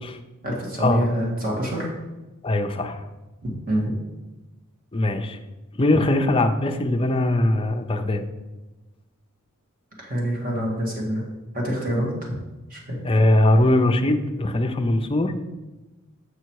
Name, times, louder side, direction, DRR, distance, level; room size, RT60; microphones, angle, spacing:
voice 1, 0.4-1.9 3.4-4.0 10.0-11.3 11.5-12.3 12.7-13.2, equal, 40° right, -2 dB, 2.0 m, -26 dB
voice 2, 2.4-3.0 4.9-5.4 5.8-8.2 13.0-15.4, left 1 dB, 25° left, 6 dB, 0.5 m, -21 dB
6.8 x 5.5 x 4.7 m, 1.1 s
head